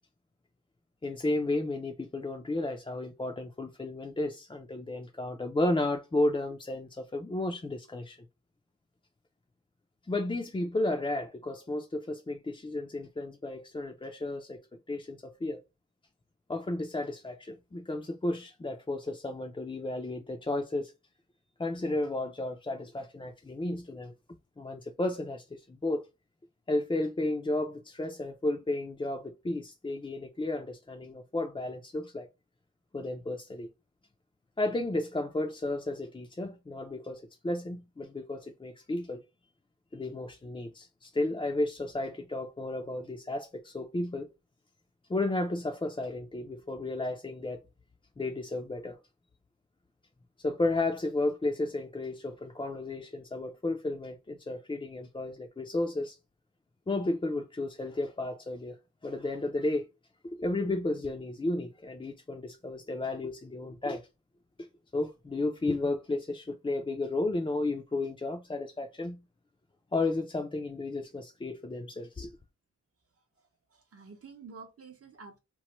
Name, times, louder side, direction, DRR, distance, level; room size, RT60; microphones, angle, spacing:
voice 1, 1.0-8.3 10.1-14.6 14.9-15.6 16.5-20.9 21.6-24.1 24.6-26.1 26.7-32.3 32.9-33.7 34.6-39.2 39.9-44.3 45.1-47.6 48.2-49.0 50.4-56.2 56.9-59.9 60.3-64.0 64.6-64.7 64.9-69.2 69.9-72.3, left 2 dB, 20° left, 0.4 m, -33 dB
voice 2, 73.4-75.4, right 4 dB, 50° right, 0.6 m, -50 dB
3.0 x 2.0 x 2.9 m
wide cardioid pair, 70°, 30 cm